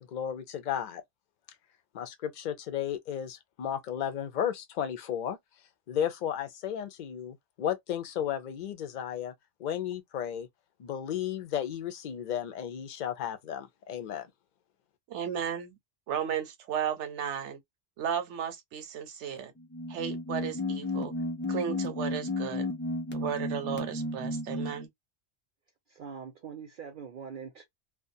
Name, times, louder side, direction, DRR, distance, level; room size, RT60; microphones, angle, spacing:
voice 1, 0.1-1.0 1.9-5.4 5.9-9.3 9.6-10.5 10.8-14.3, left 9 dB, 55° left, 0.6 m, -34 dB
voice 2, 15.1-15.8 16.1-17.6 18.0-19.5 19.9-21.1 21.5-22.7 23.1-24.9, right 8 dB, 90° right, 1.0 m, -34 dB
sound 1, 19.6-24.9, left 2 dB, 20° left, 0.3 m, -33 dB
voice 3, 25.9-27.6, right 6 dB, 55° right, 0.7 m, -43 dB
2.3 x 2.2 x 2.6 m
omnidirectional pair, 1.2 m